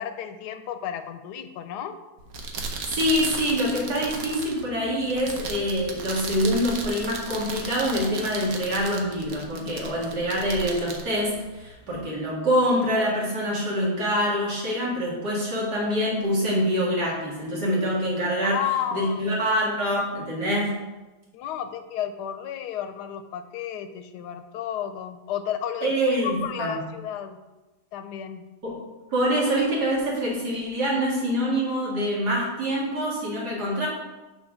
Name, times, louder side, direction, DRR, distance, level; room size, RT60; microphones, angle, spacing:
voice 1, 0.0-2.0 18.4-19.2 21.3-27.4 27.9-28.5, left 9 dB, 90° left, 9 dB, 1.2 m, -32 dB
sound 1, 2.2-12.0, right 4 dB, 65° right, 1.3 m, -36 dB
voice 2, 2.9-18.7 18.9-20.8 25.8-26.8 28.6-28.8 29.1-33.9, equal, 85° right, -5 dB, 2.8 m, -25 dB
6.3 x 4.4 x 6.2 m, 1.1 s
omnidirectional pair, 1.7 m